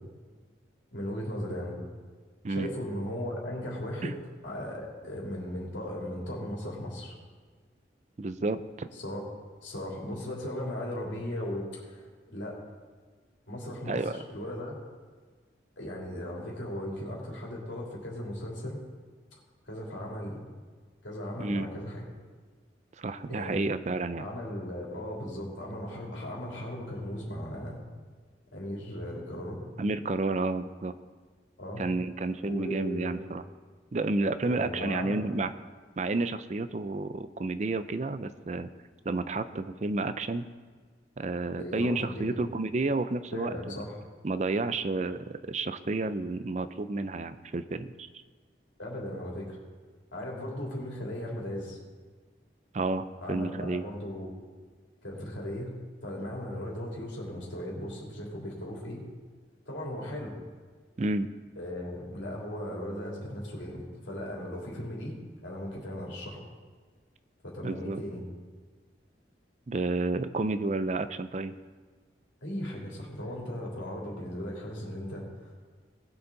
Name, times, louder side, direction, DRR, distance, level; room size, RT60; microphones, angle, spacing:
voice 1, 0.9-1.8 2.5-4.2 4.4-7.1 9.0-9.2 9.6-12.6 13.5-14.0 14.3-14.7 15.8-18.8 19.7-20.4 21.0-22.0 23.3-23.6 24.2-27.8 28.5-29.6 31.6-31.8 32.4-33.1 34.4-35.3 41.6-42.4 43.3-43.9 48.8-49.6 50.1-51.8 53.2-54.3 55.0-55.7 56.0-59.0 59.7-60.4 61.6-66.4 67.4-68.2 72.4-75.5, left 1 dB, 90° left, -3 dB, 3.3 m, -37 dB
voice 2, 8.2-8.9 13.9-14.2 21.4-21.7 23.0-24.3 29.8-30.9 31.8-33.4 33.9-35.5 36.0-38.7 39.1-40.4 41.2-43.8 44.2-48.1 52.7-53.9 61.0-61.3 67.6-68.0 69.7-71.5, right 3 dB, 40° right, 12 dB, 0.4 m, -31 dB
19.0 x 7.0 x 4.0 m, 1.5 s
head